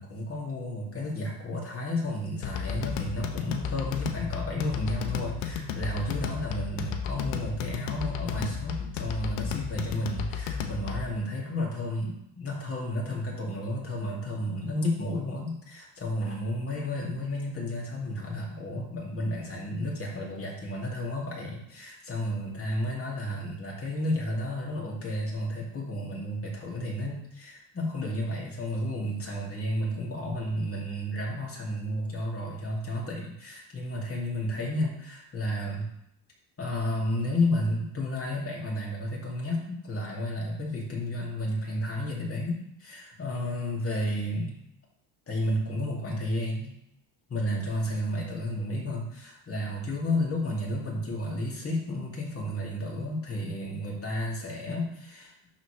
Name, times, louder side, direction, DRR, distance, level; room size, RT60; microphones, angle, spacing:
voice 1, 0.0-35.9 36.6-44.6 45.3-46.7 47.3-55.3, left 1 dB, 30° left, -3 dB, 2.5 m, -32 dB
sound 1, 2.4-11.2, left 7 dB, 85° left, 0.9 m, -33 dB
11.5 x 4.1 x 3.3 m, 0.78 s
cardioid pair, 105°, 49 cm